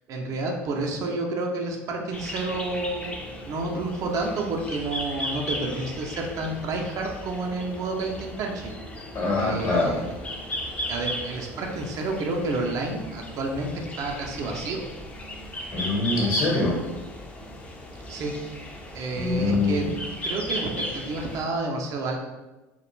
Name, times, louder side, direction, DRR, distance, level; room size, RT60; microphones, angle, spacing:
voice 1, 0.1-3.1 3.5-8.7 9.4-10.2 10.9-14.9 18.1-18.4 18.9-19.9 20.2-22.2, right 2 dB, 45° right, 1 dB, 0.5 m, -30 dB
sound 1, 2.1-21.4, equal, 15° left, 0.5 m, -36 dB
voice 2, 9.1-10.0 15.7-16.7 19.2-19.9, left 2 dB, 50° left, -3 dB, 1.0 m, -24 dB
2.3 x 2.1 x 3.0 m, 1.1 s
hypercardioid pair, 75°, 8 cm